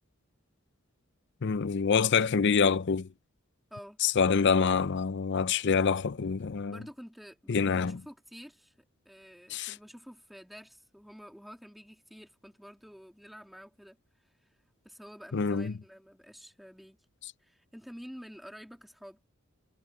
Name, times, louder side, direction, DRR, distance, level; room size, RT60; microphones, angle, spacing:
voice 1, 1.4-3.1 4.0-6.8 7.5-7.9 9.5-9.7 15.3-15.7, left 5 dB, 55° left, 0.5 m, -26 dB
voice 2, 6.7-14.0 14.8-17.0 17.4-19.2, equal, ahead, 2.7 m, -49 dB
head